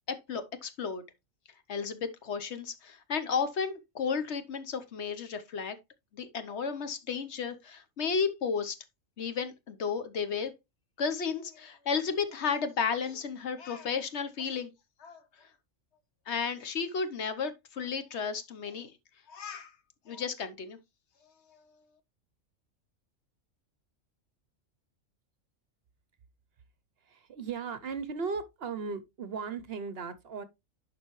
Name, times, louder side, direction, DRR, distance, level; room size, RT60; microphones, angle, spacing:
voice 1, 0.1-1.0 1.7-5.8 6.1-8.8 9.2-10.5 11.0-14.7 15.0-15.2 16.3-18.9 19.3-19.7 20.1-20.8 21.5-21.6, left 6 dB, 60° left, 1.1 m, -33 dB
voice 2, 27.0-30.4, right 5 dB, 55° right, 0.8 m, -37 dB
11.0 x 4.5 x 3.1 m
omnidirectional pair, 1.4 m